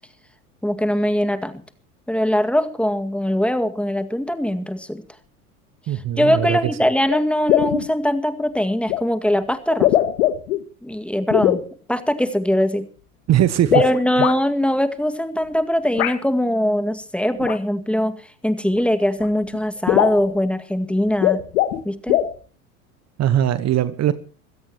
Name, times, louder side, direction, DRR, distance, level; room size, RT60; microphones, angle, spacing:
voice 1, 0.6-1.5 2.1-5.0 6.2-9.9 10.8-11.6 11.9-12.9 13.7-18.2 18.4-21.4 21.8-22.2, equal, 5° left, 2.0 m, -21 dB
voice 2, 5.9-6.6 13.3-13.8 23.2-24.1, right 11 dB, 35° right, 1.3 m, -19 dB
sound 1, 6.4-6.5 7.1-7.2 7.5-7.9 8.9-9.0 9.7-10.6 11.3-11.6 13.6-14.3 16.0-16.2 17.4-17.6 18.8-18.9 19.2-19.3 19.5-19.6 19.9-20.2 21.1-21.8 22.1-22.3, left 13 dB, 65° left, 2.0 m, -20 dB
25.0 x 16.5 x 3.0 m
figure-of-eight pair, 80°, 44 cm